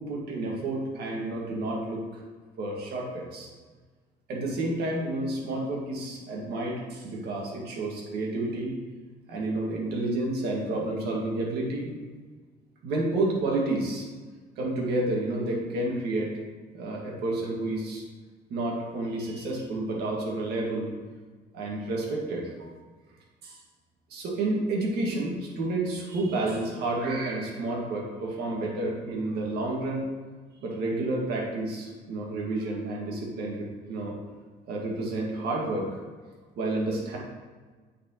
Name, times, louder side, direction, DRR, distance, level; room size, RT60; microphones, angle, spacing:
voice 1, 0.0-2.2 2.6-3.5 4.3-8.7 9.3-11.9 12.8-14.1 14.6-16.3 16.7-18.0 18.5-20.9 21.5-22.7 23.4-23.6 24.1-30.1 30.6-34.2 34.7-36.0 36.6-37.2, right 2 dB, 75° right, -2 dB, 1.8 m, -30 dB
8.4 x 4.3 x 3.0 m, 1.4 s
cardioid pair, 110°, 17 cm